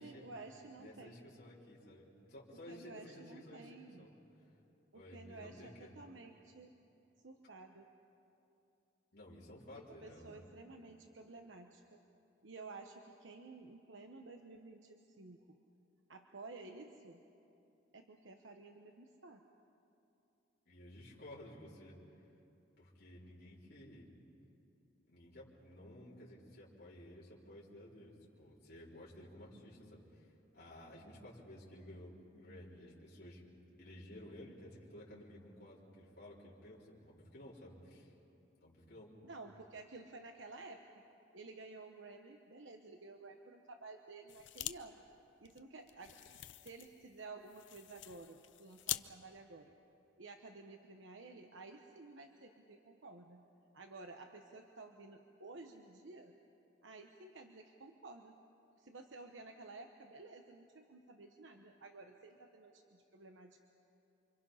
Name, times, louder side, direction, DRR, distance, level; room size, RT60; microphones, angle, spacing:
voice 1, 0.0-1.2 2.7-4.1 4.9-6.7 7.2-7.9 9.7-12.0 12.4-15.6 16.1-17.2 17.9-19.5 39.2-40.8 41.3-45.1 45.4-46.2 46.6-49.7 50.2-53.4 53.7-56.4 56.8-58.4 58.8-63.6, right 3 dB, 75° right, 4 dB, 1.1 m, -53 dB
voice 2, 0.8-4.1 4.9-5.9 9.1-10.5 20.7-22.0 22.8-24.1 25.1-33.4 33.8-38.1 38.6-39.1, left 1 dB, 50° left, -7 dB, 4.0 m, -54 dB
sound 1, 44.3-44.8 45.1-45.2 45.4-49.1, left 14 dB, 70° left, 0.6 m, -45 dB
29.0 x 25.0 x 5.7 m, 2.8 s
head